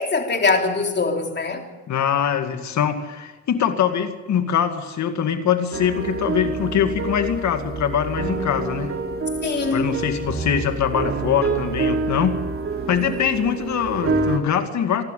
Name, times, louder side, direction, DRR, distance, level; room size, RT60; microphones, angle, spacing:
voice 1, 0.0-1.7 9.4-9.9, left 4 dB, 35° left, 3.5 m, -22 dB
voice 2, 1.9-8.9 9.7-12.4 12.9-15.0, left 8 dB, 65° left, 2.3 m, -23 dB
sound 1, 5.7-14.4, right 4 dB, 45° right, 3.4 m, -27 dB
27.5 x 12.0 x 8.4 m
cardioid pair, 90°, 30 cm